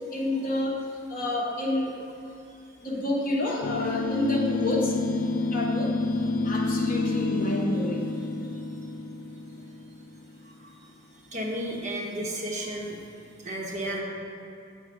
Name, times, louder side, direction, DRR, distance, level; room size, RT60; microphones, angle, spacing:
voice 1, 0.1-0.8 1.1-1.9 2.8-4.9 5.5-5.9 6.4-8.0, left 1 dB, 45° left, -2 dB, 1.0 m, -29 dB
sound 1, 3.6-10.2, left 3 dB, 80° left, 0.5 m, -29 dB
voice 2, 11.3-13.0 13.4-14.0, right 1 dB, 35° right, -1 dB, 0.9 m, -32 dB
7.7 x 4.0 x 5.0 m, 2.6 s
head